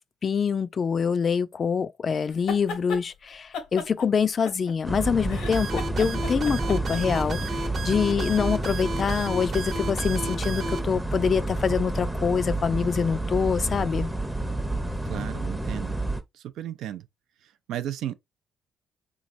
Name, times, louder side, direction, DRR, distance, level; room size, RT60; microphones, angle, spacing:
voice 1, 0.2-7.5 7.8-14.1, left 6 dB, 45° left, 0.3 m, -25 dB
sound 1, 2.3-3.0 3.5-4.9 5.3-7.5, left 4 dB, 85° left, 0.8 m, -35 dB
sound 2, 4.8-16.2, right 1 dB, 5° right, 0.6 m, -30 dB
sound 3, 5.5-10.8, right 3 dB, 60° right, 0.9 m, -34 dB
voice 2, 15.1-16.0 16.3-17.1 17.7-18.1, right 11 dB, 85° right, 0.4 m, -34 dB
3.5 x 3.1 x 2.5 m
cardioid pair, 90°, 0 cm